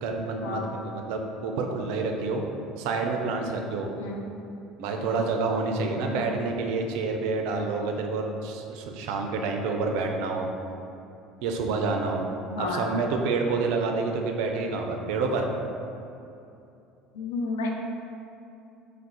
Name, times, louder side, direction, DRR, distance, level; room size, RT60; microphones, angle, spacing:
voice 1, 0.0-2.4 2.8-3.9 4.8-10.5 11.4-12.3 12.8-15.5, right 4 dB, 65° right, 3 dB, 0.4 m, -28 dB
voice 2, 12.5-12.9 17.1-17.7, left 3 dB, 75° left, 1 dB, 0.4 m, -31 dB
3.5 x 2.1 x 4.0 m, 2.8 s
figure-of-eight pair, 65°, 0 cm